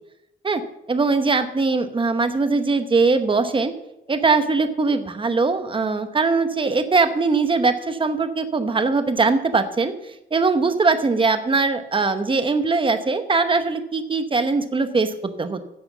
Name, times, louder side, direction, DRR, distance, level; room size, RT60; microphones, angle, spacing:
voice 1, 0.9-3.7 4.1-9.9 10.3-15.6, right 4 dB, 25° right, 9 dB, 0.9 m, -21 dB
10.0 x 7.7 x 7.1 m, 0.89 s
wide cardioid pair, 160°, 20 cm